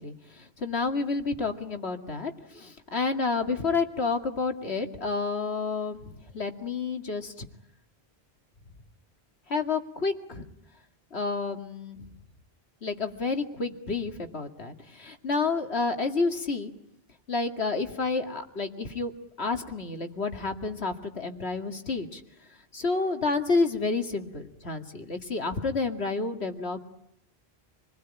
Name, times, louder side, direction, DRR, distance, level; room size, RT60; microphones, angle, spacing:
voice 1, 0.0-7.5 9.5-10.5 11.1-12.0 12.8-16.7 17.3-19.1 19.4-22.2 22.7-26.8, left 4 dB, 90° left, 5 dB, 2.5 m, -30 dB
28.5 x 20.5 x 9.0 m, 0.78 s
omnidirectional pair, 1.1 m